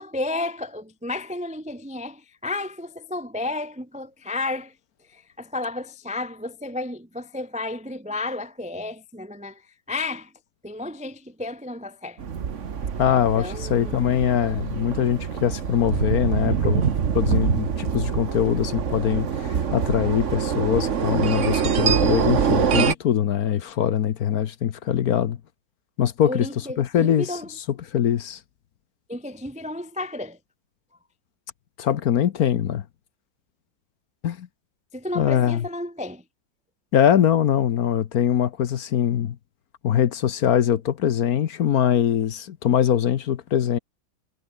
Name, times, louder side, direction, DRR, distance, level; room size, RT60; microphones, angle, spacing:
voice 1, 0.0-4.7 5.1-10.3 10.6-12.2 13.4-14.0 26.2-27.5 29.1-30.4 34.9-36.2, left 2 dB, 10° right, 0.3 m, -32 dB
sound 1, 12.2-22.9, right 7 dB, 45° right, 1.4 m, -25 dB
voice 2, 13.0-25.4 26.0-26.5 26.8-27.3 27.9-28.4 31.8-32.8 34.2-34.5 35.1-35.6 36.9-39.4 39.8-43.8, left 9 dB, 60° left, 1.2 m, -22 dB
omnidirectional pair, 2.1 m